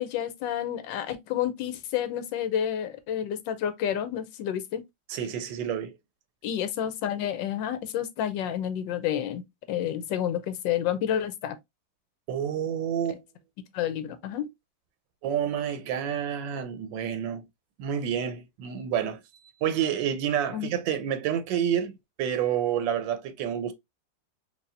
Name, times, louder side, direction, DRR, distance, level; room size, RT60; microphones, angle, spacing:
voice 1, 0.0-4.8 6.4-9.4 9.7-11.6 13.1-13.2 13.7-14.5 20.5-20.7, left 10 dB, 85° left, 1.3 m, -30 dB
voice 2, 5.1-5.9 12.3-13.2 15.2-17.4 17.8-19.2 19.6-23.7, right 9 dB, 85° right, 1.3 m, -29 dB
4.8 x 2.6 x 2.5 m
omnidirectional pair, 2.0 m